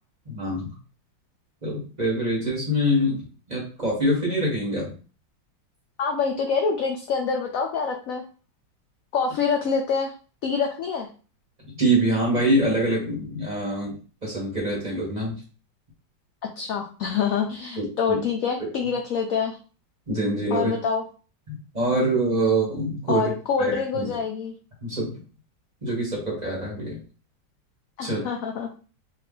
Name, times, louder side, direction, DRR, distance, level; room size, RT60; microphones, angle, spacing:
voice 1, 0.3-0.7 1.6-4.9 11.8-14.0 14.2-15.3 17.8-18.2 20.1-20.7 21.5-23.3 23.6-24.1 24.8-25.1 25.8-27.0 28.0-28.2, right 1 dB, 25° right, -3 dB, 1.1 m, -25 dB
voice 2, 6.0-8.2 9.1-10.1 10.4-11.1 16.6-19.6 20.5-21.0 23.1-24.5 28.0-28.7, left 5 dB, 80° left, 2 dB, 0.7 m, -26 dB
3.3 x 2.4 x 3.6 m, 0.37 s
omnidirectional pair, 2.0 m